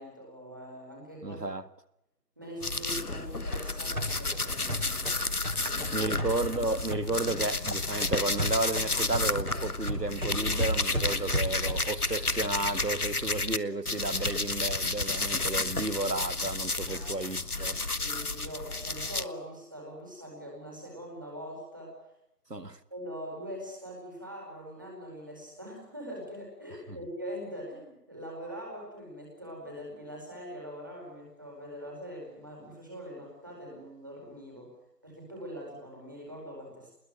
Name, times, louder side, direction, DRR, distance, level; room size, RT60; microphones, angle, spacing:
voice 1, 0.0-1.4 2.4-5.1 5.6-6.2 16.9-17.1 18.0-21.9 22.9-34.7 35.0-36.9, equal, 15° right, 4.8 m, -43 dB
voice 2, 1.2-1.6 5.9-17.8 22.5-22.8, right 2 dB, 80° right, 2.0 m, -32 dB
sound 1, 2.6-13.6 13.8-19.2, left 3 dB, 65° left, 1.3 m, -31 dB
sound 2, 3.1-7.4 7.7-12.0, right 1 dB, 60° right, 7.7 m, -35 dB
24.5 x 21.0 x 9.5 m
figure-of-eight pair, 175°, 48 cm